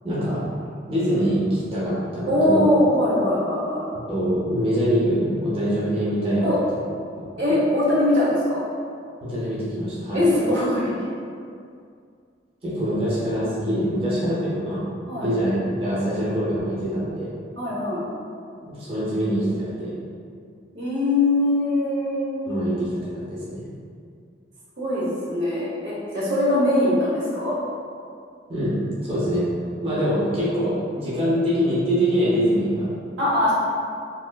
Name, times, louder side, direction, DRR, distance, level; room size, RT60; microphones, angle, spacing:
voice 1, 0.0-0.4 0.9-2.7 4.1-6.4 6.7-6.8 7.2-7.6 9.2-10.2 12.6-14.9 15.2-17.3 18.6-19.9 22.5-23.6 28.5-29.5 29.8-32.9, equal, 30° right, -10 dB, 0.8 m, -24 dB
voice 2, 2.3-3.8 6.4-6.6 7.4-8.6 10.1-10.9 12.8-13.0 15.1-15.3 17.6-18.0 20.7-22.6 24.8-27.6 33.2-33.5, left 1 dB, 70° right, -7 dB, 0.9 m, -22 dB
3.5 x 2.5 x 2.2 m, 2.3 s
head